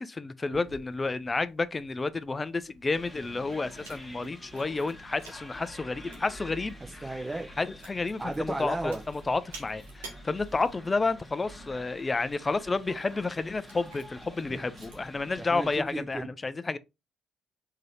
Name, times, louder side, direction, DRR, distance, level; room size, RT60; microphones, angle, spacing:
voice 1, 0.0-7.1 7.6-16.8, left 3 dB, 30° left, 0.4 m, -31 dB
Chewing mastication, 0.5-16.3, right 3 dB, 80° right, 0.8 m, -53 dB
sound 1, 2.9-15.8, equal, 10° left, 1.3 m, -48 dB
voice 2, 7.0-7.5 8.2-9.0 14.5-14.9 15.5-16.3, right 2 dB, 20° right, 0.6 m, -34 dB
3.7 x 2.7 x 3.1 m
figure-of-eight pair, 40°, 0 cm